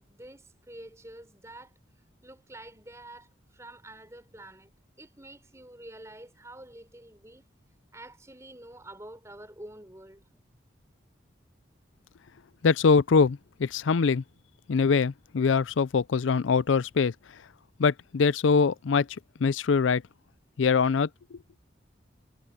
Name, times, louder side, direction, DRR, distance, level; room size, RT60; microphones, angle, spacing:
voice 1, 0.0-1.7 2.2-7.5 7.9-10.2, right 1 dB, 15° right, 4.6 m, -48 dB
voice 2, 12.6-14.2 14.7-17.1 17.8-19.1 19.4-20.0 20.6-21.4, left 5 dB, 80° left, 0.5 m, -23 dB
head